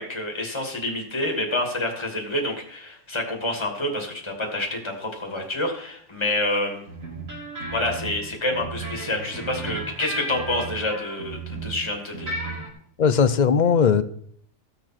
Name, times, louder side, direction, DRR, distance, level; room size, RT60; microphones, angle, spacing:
voice 1, 0.0-6.8 7.7-12.4, left 1 dB, 20° left, 1 dB, 2.3 m, -28 dB
sound 1, 6.9-11.8 12.1-12.7, right 3 dB, 70° right, 4.1 m, -34 dB
voice 2, 13.0-14.0, left 6 dB, 45° left, 13 dB, 0.6 m, -18 dB
15.5 x 7.0 x 5.9 m, 0.63 s
omnidirectional pair, 1.5 m